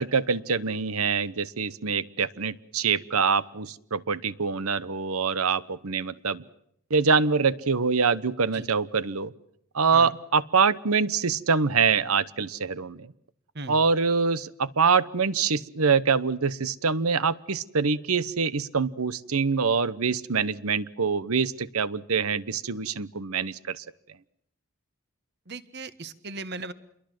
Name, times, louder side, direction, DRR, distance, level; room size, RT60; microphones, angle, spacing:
voice 1, 0.0-6.4 6.9-9.3 9.7-13.1 13.7-23.8, right 5 dB, 90° right, 17 dB, 1.0 m, -25 dB
voice 2, 25.5-26.7, right 3 dB, 50° right, 14 dB, 1.3 m, -37 dB
28.5 x 22.5 x 7.7 m, 0.72 s
head